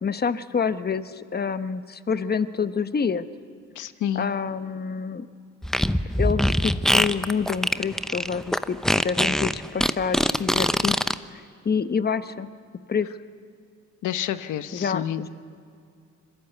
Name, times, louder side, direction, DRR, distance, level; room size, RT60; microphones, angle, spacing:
voice 1, 0.0-3.3 4.1-5.3 6.2-12.5 12.9-13.1 14.7-15.3, left 6 dB, 30° left, 12 dB, 1.1 m, -27 dB
voice 2, 3.7-4.3 14.0-15.3, left 10 dB, 80° left, 11 dB, 1.2 m, -29 dB
Fart, 5.6-11.1, equal, ahead, 0.8 m, -22 dB
26.5 x 23.0 x 8.3 m, 2.3 s
cardioid pair, 90°, 30 cm